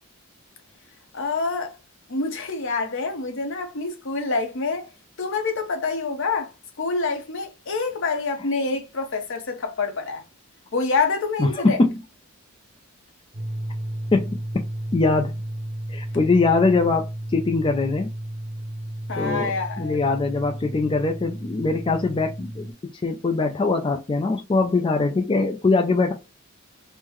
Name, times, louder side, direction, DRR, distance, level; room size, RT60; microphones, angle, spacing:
voice 1, 1.1-1.8 2.1-4.9 5.2-6.5 6.8-10.2 10.7-11.9 19.1-20.0, left 4 dB, 60° left, 0.7 m, -26 dB
voice 2, 11.4-11.7 14.1-14.6 14.9-15.4 15.9-18.1 19.2-22.7 23.0-26.1, left 3 dB, 25° left, 0.3 m, -22 dB
sound 1, 13.3-22.7, right 1 dB, 20° right, 0.6 m, -33 dB
3.7 x 2.0 x 3.0 m
head